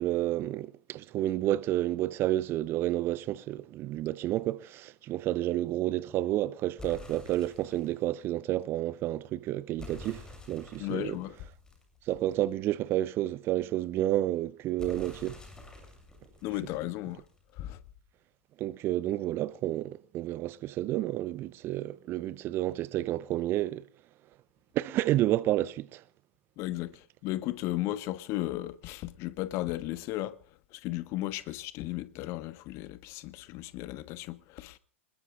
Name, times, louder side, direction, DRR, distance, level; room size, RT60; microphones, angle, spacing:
voice 1, 0.0-11.2 12.1-15.4 18.6-23.8 24.7-26.0, right 14 dB, 35° right, 0.8 m, -30 dB
sound 1, 6.8-8.0 9.8-12.5 14.8-17.5, left 3 dB, 10° left, 7.7 m, -48 dB
voice 2, 10.8-11.4 16.4-17.2 17.6-17.8 26.6-30.4 30.7-34.8, left 16 dB, 40° left, 1.4 m, -35 dB
27.0 x 21.0 x 2.5 m
figure-of-eight pair, 95°, 7 cm